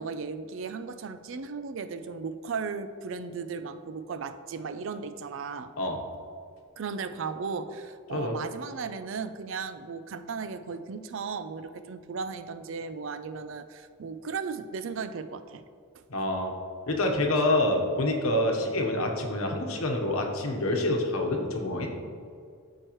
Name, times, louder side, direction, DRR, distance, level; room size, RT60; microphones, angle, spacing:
voice 1, 0.0-5.7 6.8-15.6 15.9-16.0, right 5 dB, 65° right, 11 dB, 0.4 m, -36 dB
voice 2, 16.1-16.5 16.9-21.9, left 1 dB, 85° left, 2 dB, 1.1 m, -27 dB
13.5 x 4.7 x 3.1 m, 2.2 s
head